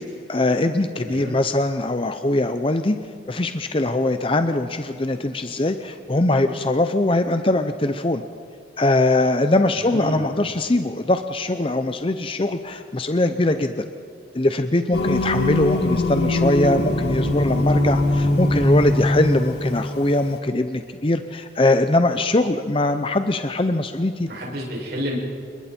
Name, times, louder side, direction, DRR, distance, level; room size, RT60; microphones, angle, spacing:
voice 1, 0.3-3.0 3.3-8.2 8.8-13.9 14.3-24.3, left 2 dB, 30° left, 8 dB, 0.7 m, -21 dB
voice 2, 1.0-1.3 9.7-10.3 24.3-25.1, equal, 60° right, -2 dB, 6.6 m, -30 dB
Singing, 14.9-20.4, left 1 dB, 65° left, 2.8 m, -22 dB
27.5 x 22.0 x 4.5 m, 2.5 s
head